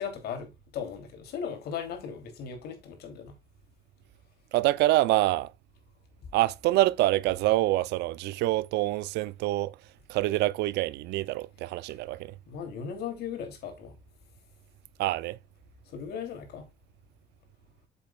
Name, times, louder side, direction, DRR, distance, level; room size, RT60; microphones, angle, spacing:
voice 1, 0.0-3.3 12.5-13.9 15.9-16.6, left 7 dB, 70° left, 2.9 m, -37 dB
voice 2, 4.5-5.5 6.3-9.7 10.1-12.3 15.0-15.4, right 17 dB, 80° right, 0.5 m, -26 dB
7.9 x 7.1 x 2.3 m
cardioid pair, 110°, 17 cm